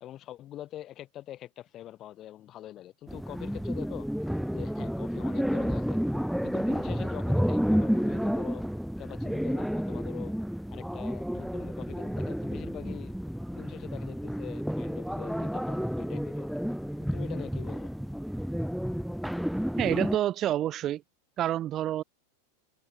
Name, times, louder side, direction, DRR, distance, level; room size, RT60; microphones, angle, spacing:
voice 1, 0.0-4.1 4.5-6.0 6.4-8.7 9.0-10.3 10.7-13.2 13.5-16.5 17.1-17.9, left 13 dB, 30° left, 2.2 m, -44 dB
sound 1, 3.1-20.2, equal, ahead, 0.7 m, -31 dB
voice 2, 19.8-21.0 21.4-22.0, right 12 dB, 30° right, 0.8 m, -28 dB
figure-of-eight pair, 90°, 0 cm